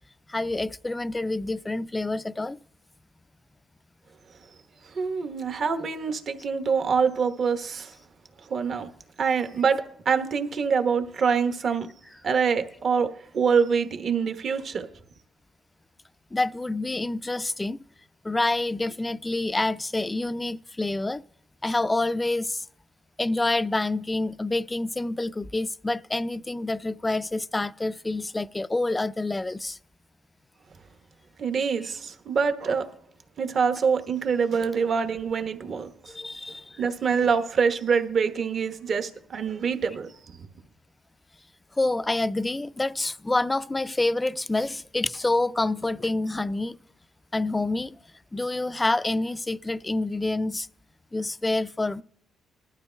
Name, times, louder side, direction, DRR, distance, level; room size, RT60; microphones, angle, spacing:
voice 1, 0.3-2.6 16.3-17.8 18.2-21.2 21.6-22.7 23.2-29.8 36.1-36.8 41.8-46.8 47.3-48.0 48.3-50.7 51.1-52.0, left 2 dB, 15° left, 0.3 m, -27 dB
voice 2, 4.9-7.9 8.5-8.9 9.2-11.9 12.2-14.9 31.4-32.9 33.4-36.1 36.8-40.1, right 6 dB, 55° right, 1.1 m, -25 dB
20.0 x 12.0 x 2.2 m
cardioid pair, 90°, 0 cm